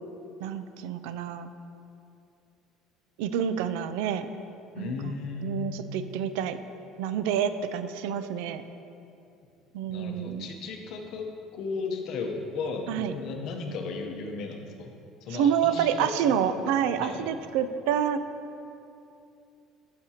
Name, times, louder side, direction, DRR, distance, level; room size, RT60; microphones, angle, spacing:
voice 1, 0.4-1.5 3.2-4.3 4.8-6.6 7.0-8.6 9.7-10.5 12.9-13.1 15.3-18.2, right 8 dB, 90° right, 11 dB, 0.4 m, -28 dB
voice 2, 4.7-5.8 9.9-11.3 11.5-14.9 15.2-16.1 16.5-17.2, left 4 dB, 50° left, 3 dB, 0.8 m, -35 dB
10.5 x 6.6 x 2.8 m, 2.7 s
cardioid pair, 170°, 0 cm